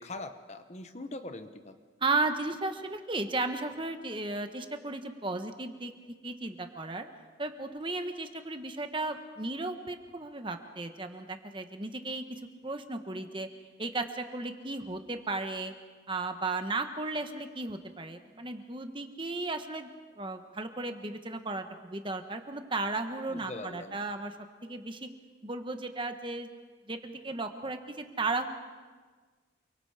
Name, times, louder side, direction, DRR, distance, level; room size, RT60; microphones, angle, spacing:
voice 1, 0.0-1.7 23.3-24.0, left 2 dB, 35° left, 8 dB, 1.0 m, -42 dB
voice 2, 2.0-5.9 6.2-7.0 7.4-12.2 12.6-13.5 13.8-15.7 16.1-19.9 20.2-24.3 24.6-25.1 25.4-26.5 26.9-28.5, right 3 dB, 25° right, 7 dB, 1.3 m, -35 dB
28.5 x 24.0 x 5.0 m, 1.5 s
head